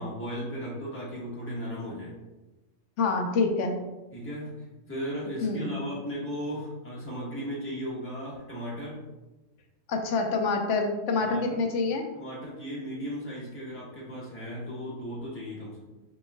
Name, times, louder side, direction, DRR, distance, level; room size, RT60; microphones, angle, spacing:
voice 1, 0.0-2.1 4.1-9.0 11.2-11.6 12.1-15.8, equal, 10° left, -6 dB, 1.3 m, -36 dB
voice 2, 3.0-3.8 5.4-5.9 9.9-12.1, left 3 dB, 75° left, 3 dB, 1.0 m, -27 dB
5.4 x 4.4 x 2.2 m, 1.1 s
omnidirectional pair, 1.3 m